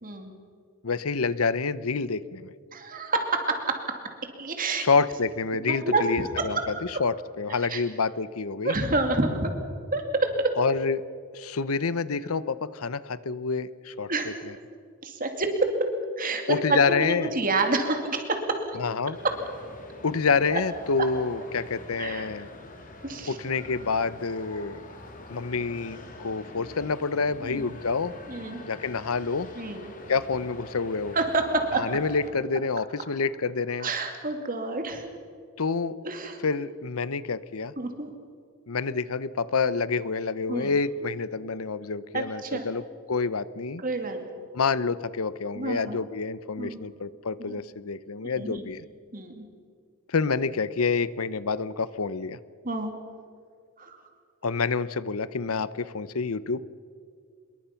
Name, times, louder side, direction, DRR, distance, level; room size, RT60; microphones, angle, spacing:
voice 1, 0.8-2.5 4.8-8.8 10.6-11.0 11.3-14.1 14.5-14.6 16.5-17.3 18.8-19.2 20.0-22.5 23.3-24.8 25.3-28.1 28.7-29.5 30.1-31.2 31.7-33.9 35.6-36.0 36.4-37.7 38.7-42.8 43.1-43.8 44.5-48.8 50.1-52.4 54.4-56.6, left 4 dB, 75° left, 16 dB, 0.8 m, -28 dB
voice 2, 2.7-3.8 4.4-4.8 5.8-6.0 6.4-6.6 7.7-7.8 8.6-9.5 9.9-10.5 14.1-14.4 15.0-15.9 16.2-16.6 16.9-18.8 19.1-19.4 20.5-20.6 21.0-21.1 22.0-22.3 23.0-23.4 27.4-27.7 28.3-28.6 29.6-29.9 31.1-31.8 33.8-35.1 36.0-36.4 37.8-38.1 40.5-40.7 42.1-42.7 43.8-44.3 45.6-46.0 46.6-46.8 47.4-47.6 48.4-48.7 49.1-49.4 52.6-52.9 53.8-54.0, right 3 dB, 40° right, 5 dB, 2.5 m, -28 dB
sound 1, 19.1-32.3, left 2 dB, 40° left, 3.1 m, -45 dB
26.5 x 22.0 x 5.9 m, 2.2 s
head